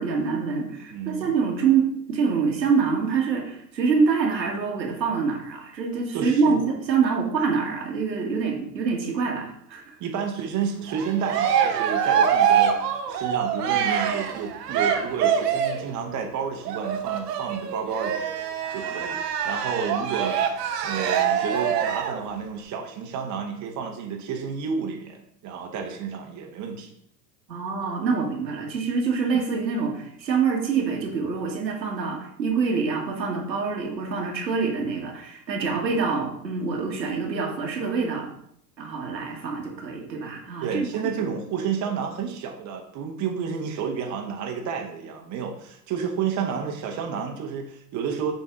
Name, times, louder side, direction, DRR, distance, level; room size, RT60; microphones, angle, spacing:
voice 1, 0.0-10.0 27.5-38.3 38.8-40.9, right 5 dB, 90° right, 0 dB, 1.8 m, -25 dB
voice 2, 0.9-1.3 6.1-6.7 10.0-18.2 18.7-19.2 19.4-20.4 20.8-26.9 29.3-29.4 35.6-35.8 40.6-48.3, right 6 dB, 35° right, 2 dB, 1.3 m, -31 dB
Cheering, 10.9-15.9 16.6-22.2, right 8 dB, 70° right, 1.1 m, -24 dB
7.0 x 4.1 x 3.8 m, 0.70 s
hypercardioid pair, 95°, 50 cm